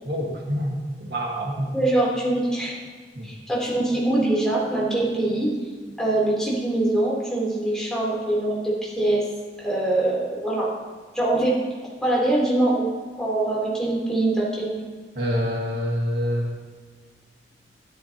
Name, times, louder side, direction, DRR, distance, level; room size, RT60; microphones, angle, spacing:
voice 1, 0.0-1.7 3.1-3.3 3.7-3.8 15.1-16.5, equal, 65° right, -1 dB, 1.7 m, -26 dB
voice 2, 1.7-2.7 3.2-5.5 6.0-9.2 9.6-10.7 11.1-11.6 12.0-12.9 13.2-14.8, right 2 dB, 5° left, -6 dB, 3.3 m, -23 dB
13.0 x 12.0 x 2.9 m, 1.5 s
head